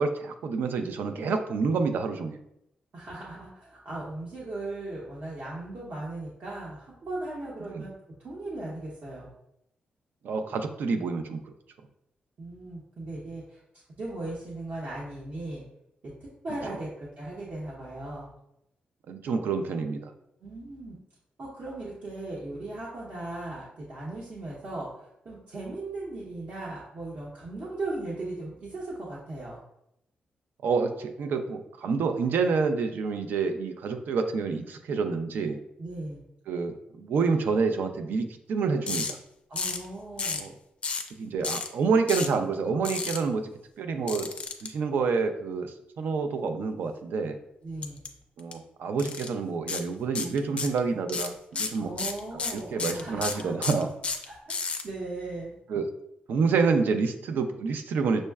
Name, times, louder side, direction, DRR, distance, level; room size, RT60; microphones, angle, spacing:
voice 1, 0.0-2.4 7.7-7.8 10.2-11.4 19.1-20.1 30.6-35.6 36.5-39.2 40.4-40.5 41.2-43.4 43.8-44.3 44.6-47.4 48.4-51.9 52.5-53.9 55.7-55.9 56.3-58.2, right 4 dB, 75° right, 7 dB, 0.4 m, -28 dB
voice 2, 2.9-7.9 8.2-9.3 12.4-13.6 14.0-15.6 16.0-18.3 20.4-21.0 21.4-29.6 35.8-36.2 39.5-40.5 47.6-48.0 51.8-53.5 54.3-54.4 54.8-55.6, right 2 dB, 50° right, -6 dB, 0.8 m, -37 dB
sound 1, 38.9-39.1 39.6-39.9 40.2-40.5 40.8-41.1 41.4-41.7 42.1-42.3 42.8-43.2 44.1-44.7 47.8-48.1 48.4-48.5 49.0-49.3 49.7-49.8 50.1-50.8 51.1-54.8, left 4 dB, 35° left, 0.4 m, -31 dB
6.2 x 2.1 x 2.3 m, 0.80 s
wide cardioid pair, 160°, 3 cm